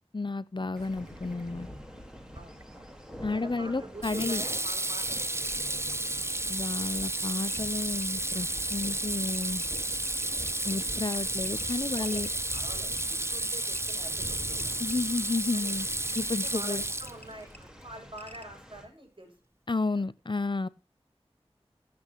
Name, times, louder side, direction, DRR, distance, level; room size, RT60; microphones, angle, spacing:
voice 1, 0.1-1.7 3.2-4.4 6.5-9.6 10.6-12.3 14.8-15.9 16.2-16.8 19.7-20.7, left 3 dB, 50° left, 0.7 m, -32 dB
sound 1, 0.7-18.9, equal, 5° right, 4.1 m, -45 dB
Water tap faucet / Sink (filling or washing), 2.4-2.7 4.0-17.4, right 1 dB, 25° right, 0.8 m, -32 dB
voice 2, 3.3-5.2 11.9-14.7 15.5-15.7 16.3-19.3 19.9-20.1, right 1 dB, 50° right, 7.4 m, -46 dB
sound 2, 4.3-4.4 5.4-5.6 6.9-7.0 7.5-7.6 8.0-8.1 8.7-8.9 9.3-10.8 11.1-11.2 11.4-12.6 13.0-13.1 13.7-14.0 14.6-15.0 15.7-15.8 16.1-16.5 17.1-17.3 17.5-17.6 18.2-18.5, left 2 dB, 15° left, 2.2 m, -51 dB
21.5 x 8.7 x 3.0 m
wide cardioid pair, 50°, 11 cm